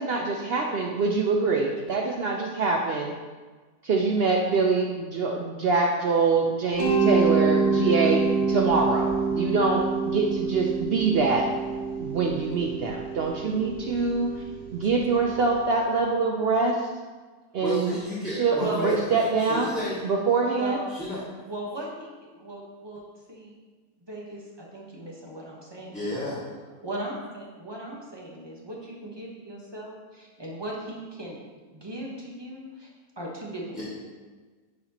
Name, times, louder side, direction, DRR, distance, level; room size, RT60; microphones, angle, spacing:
voice 1, 0.0-3.1 3.8-11.5 12.0-14.4 14.7-16.9 17.5-17.9 18.3-19.7 20.0-20.8, right 4 dB, 70° right, 1 dB, 0.5 m, -25 dB
Mallet percussion, 6.8-15.5, right 4 dB, 25° left, 1.5 m, -27 dB
voice 2, 17.6-20.0 20.9-21.2 25.9-26.4 33.7-33.8, left 1 dB, 5° left, -14 dB, 1.9 m, -32 dB
voice 3, 18.5-18.9 20.5-20.8 21.5-22.1 22.4-23.0 23.3-23.5 24.0-26.4 26.8-31.4 31.7-32.9 33.2-33.8, right 1 dB, 20° right, -3 dB, 1.0 m, -37 dB
10.5 x 4.2 x 2.9 m, 1.4 s
omnidirectional pair, 1.6 m